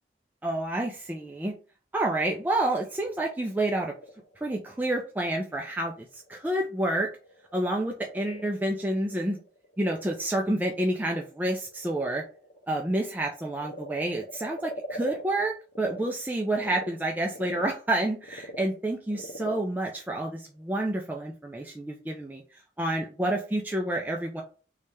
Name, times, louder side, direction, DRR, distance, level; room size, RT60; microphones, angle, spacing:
voice 1, 0.4-1.5 1.9-3.9 4.4-7.1 7.5-9.4 9.8-12.2 12.7-24.4, right 1 dB, 10° right, 0 dB, 0.3 m, -29 dB
Frog, 3.4-16.1 16.4-21.1, equal, 60° left, 0.7 m, -45 dB
3.2 x 2.8 x 3.3 m, 0.37 s
head